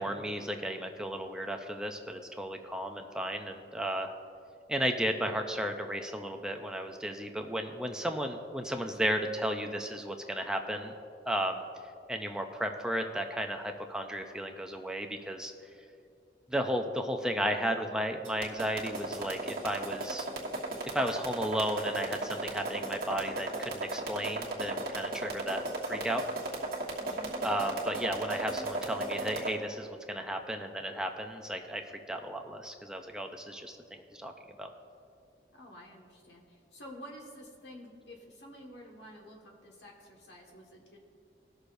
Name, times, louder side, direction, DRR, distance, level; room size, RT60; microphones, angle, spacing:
voice 1, 0.0-4.1 4.7-10.9 11.3-11.6 12.1-15.5 16.5-20.3 20.9-26.2 27.4-31.8 32.1-34.3 34.6-34.7, equal, 5° right, 4 dB, 0.5 m, -34 dB
sound 1, 18.2-29.5, right 2 dB, 55° right, 1.4 m, -35 dB
voice 2, 27.0-27.4 35.5-41.0, equal, 80° left, -1 dB, 1.6 m, -50 dB
19.5 x 6.5 x 2.6 m, 2.5 s
head